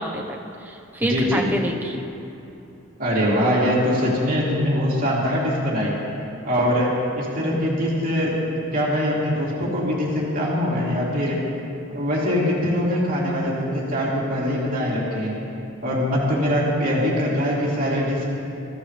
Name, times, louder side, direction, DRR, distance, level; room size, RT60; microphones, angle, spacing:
voice 1, 0.0-2.0, right 1 dB, 10° right, 0 dB, 1.1 m, -28 dB
voice 2, 1.1-1.4 3.0-6.0 6.4-11.4 11.9-15.3 15.8-18.4, equal, 40° right, -6 dB, 3.3 m, -22 dB
23.0 x 15.0 x 3.4 m, 2.8 s
head